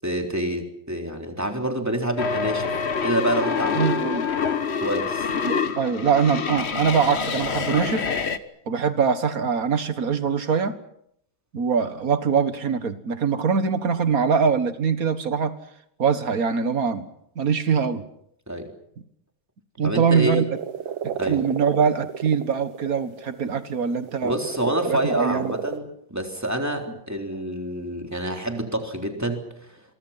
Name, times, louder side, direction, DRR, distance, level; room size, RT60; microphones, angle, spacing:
voice 1, 0.0-2.8 3.0-4.0 4.8-5.3 18.5-18.7 19.8-20.4 21.1-21.4 24.2-25.9 26.1-29.7, right 1 dB, 10° right, 3 dB, 3.6 m, -27 dB
sound 1, 2.2-8.4, left 6 dB, 40° left, 1.3 m, -26 dB
voice 2, 3.7-4.2 5.4-8.1 8.7-10.8 11.5-15.5 16.0-17.1 17.4-18.0 19.8-20.6 21.0-24.4 24.8-25.5, right 6 dB, 50° right, 11 dB, 1.9 m, -23 dB
sound 2, 20.6-23.6 23.9-25.8, right 7 dB, 80° right, 2.0 m, -31 dB
29.0 x 24.0 x 5.8 m, 0.73 s
omnidirectional pair, 2.1 m